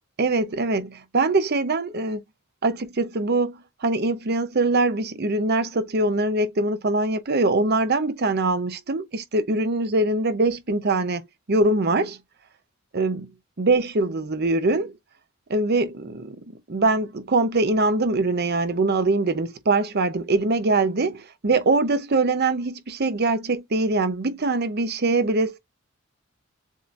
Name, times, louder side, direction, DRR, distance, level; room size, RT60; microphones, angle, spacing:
voice 1, 0.2-2.2 2.6-11.2 11.5-12.2 12.9-13.3 13.6-15.0 15.5-16.4 16.7-25.6, right 2 dB, 50° right, 0.7 m, -23 dB
7.3 x 2.8 x 2.5 m
head